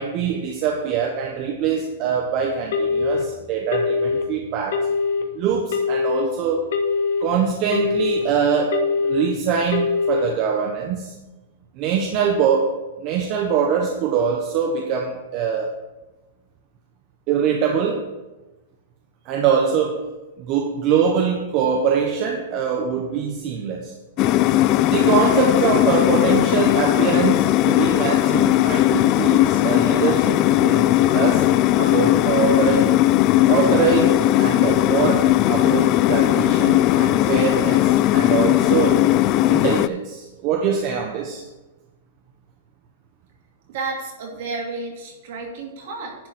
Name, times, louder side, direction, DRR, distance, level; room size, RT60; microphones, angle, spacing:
voice 1, 0.0-4.9 5.3-6.7 7.2-11.1 11.8-15.7 17.3-18.1 19.2-20.1 20.4-23.9 24.9-31.5 31.8-32.9 33.5-39.0 39.5-41.4, right 6 dB, 40° right, 2 dB, 0.9 m, -23 dB
Telephone, 2.7-3.2 3.7-4.2 4.7-5.2 5.7-6.2 6.7-7.2 7.7-8.2 8.7-9.2 9.7-10.2, left 5 dB, 75° left, 1.3 m, -22 dB
sound 1, 24.2-39.9, left 14 dB, 35° left, 0.3 m, -18 dB
voice 2, 43.7-46.1, right 3 dB, 60° right, 0 dB, 2.5 m, -31 dB
10.5 x 4.0 x 7.5 m, 1.1 s
hypercardioid pair, 145°, 0 cm